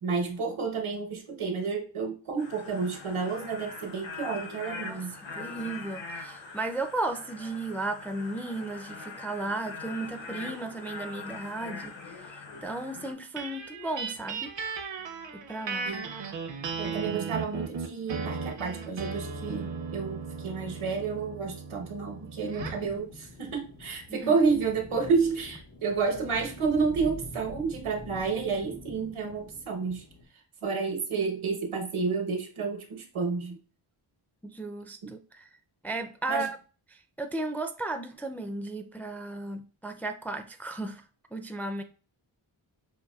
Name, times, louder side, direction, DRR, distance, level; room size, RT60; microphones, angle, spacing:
voice 1, 0.0-5.1 15.8-16.0 16.8-30.0 30.6-33.6 35.0-35.1 36.3-36.5, right 5 dB, 85° right, 1.1 m, -30 dB
sound 1, 2.4-13.1, left 4 dB, 65° left, 0.8 m, -42 dB
voice 2, 5.4-11.9 12.6-14.5 15.3-15.9 24.1-24.3 34.4-35.5 35.8-36.6 37.2-41.0 41.3-41.8, right 2 dB, 5° left, 0.3 m, -34 dB
sound 2, 13.4-22.9, right 5 dB, 65° right, 0.7 m, -36 dB
sound 3, 22.6-30.2, left 1 dB, 85° left, 1.3 m, -45 dB
5.5 x 2.6 x 2.3 m
wide cardioid pair, 90°, 48 cm